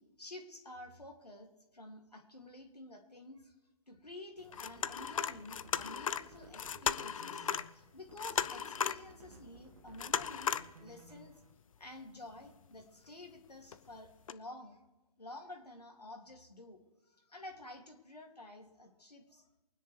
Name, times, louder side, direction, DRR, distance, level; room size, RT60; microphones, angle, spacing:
voice 1, 0.0-3.5 3.9-11.4 11.8-14.8 15.2-19.5, left 2 dB, 85° left, 3 dB, 2.4 m, -51 dB
sound 1, 4.4-11.5, right 2 dB, 65° right, 2.2 m, -58 dB
sound 2, 4.5-7.7 8.0-9.1 9.9-10.7 11.1-11.2 12.3-12.7 13.7-13.8 14.3-14.4, left 7 dB, 60° left, 0.6 m, -36 dB
23.5 x 10.0 x 3.3 m, 1.1 s
figure-of-eight pair, 130°, 20 cm